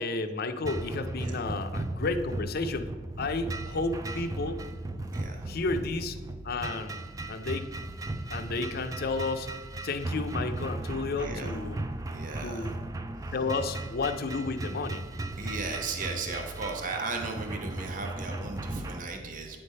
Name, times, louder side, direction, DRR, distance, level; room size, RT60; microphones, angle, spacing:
voice 1, 0.0-2.9 3.2-4.6 5.5-6.2 6.4-7.7 8.3-9.5 9.8-11.8 12.4-12.7 13.3-15.0, left 3 dB, 55° left, 8 dB, 0.5 m, -32 dB
sound 1, 0.6-19.0, right 2 dB, 20° right, 0.3 m, -36 dB
voice 2, 5.1-5.6 11.1-11.5 12.0-12.7 13.3-13.4 15.4-19.6, right 4 dB, 45° right, 4 dB, 0.8 m, -36 dB
9.1 x 3.3 x 5.4 m, 1.3 s
head